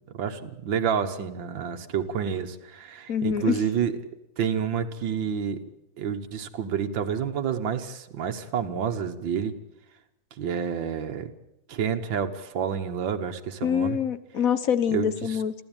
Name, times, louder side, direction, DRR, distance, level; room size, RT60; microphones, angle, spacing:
voice 1, 0.1-4.0 4.4-5.6 6.0-9.6 10.4-11.3 11.7-14.0 14.9-15.1, right 7 dB, 80° right, 5 dB, 2.1 m, -29 dB
voice 2, 3.1-3.6 13.6-15.5, left 8 dB, 50° left, 13 dB, 1.3 m, -25 dB
29.5 x 12.0 x 9.0 m, 0.87 s
omnidirectional pair, 2.0 m